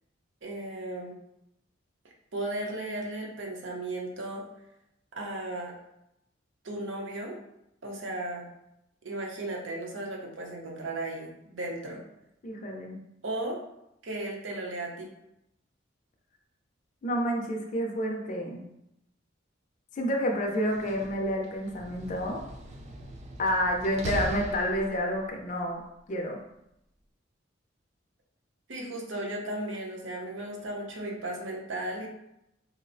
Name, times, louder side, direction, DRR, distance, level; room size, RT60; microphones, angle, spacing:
voice 1, 0.4-1.1 2.3-4.4 5.2-5.7 6.6-7.4 7.8-8.5 9.0-12.0 13.2-13.6 14.0-15.1 28.7-32.1, right 1 dB, 70° right, -1 dB, 0.7 m, -35 dB
voice 2, 12.4-13.0 17.0-18.6 20.0-22.4 23.4-25.8 26.1-26.4, equal, 40° left, 1 dB, 0.4 m, -29 dB
Slam, 20.6-25.3, right 1 dB, 35° right, 0.3 m, -40 dB
4.2 x 2.0 x 2.5 m, 0.83 s
head